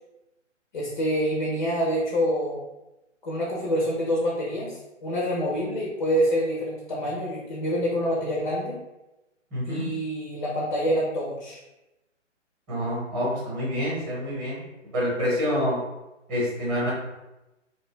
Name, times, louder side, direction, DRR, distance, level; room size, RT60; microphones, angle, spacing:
voice 1, 0.7-2.6 3.2-8.8 9.7-11.6, equal, 40° left, -4 dB, 0.5 m, -26 dB
voice 2, 9.5-9.9 12.7-14.6 14.9-15.8 16.3-16.9, equal, 20° right, -8 dB, 0.9 m, -27 dB
2.6 x 2.2 x 2.2 m, 0.97 s
figure-of-eight pair, 140°, 37 cm